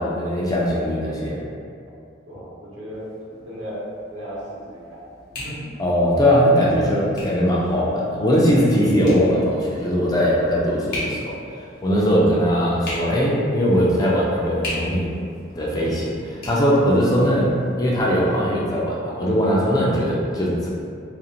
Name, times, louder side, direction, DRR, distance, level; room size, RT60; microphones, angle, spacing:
voice 1, 0.0-1.4 5.8-11.4 11.8-15.1 15.6-17.5 17.8-20.7, equal, 20° left, -5 dB, 0.3 m, -20 dB
voice 2, 2.3-3.0 3.4-3.8 4.1-5.0 5.4-5.7 15.6-16.0, equal, 85° right, -8 dB, 0.8 m, -35 dB
sound 1, 2.9-18.0, left 1 dB, 55° left, 0.8 m, -39 dB
2.5 x 2.0 x 2.8 m, 2.3 s
head